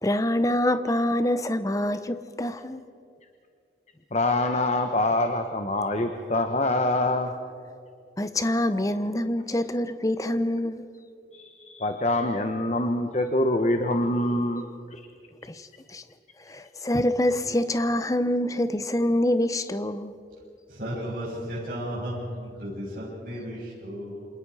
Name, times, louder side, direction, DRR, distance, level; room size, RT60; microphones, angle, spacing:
voice 1, 0.0-2.8 8.2-10.8 15.5-15.6 15.9-16.0 16.5-20.1, left 1 dB, 20° left, 0.9 m, -25 dB
voice 2, 4.1-7.3 11.3-14.7 14.9-15.0, left 1 dB, 40° left, 1.1 m, -25 dB
voice 3, 20.7-24.3, equal, 50° right, 6.9 m, -34 dB
28.5 x 26.5 x 4.9 m
head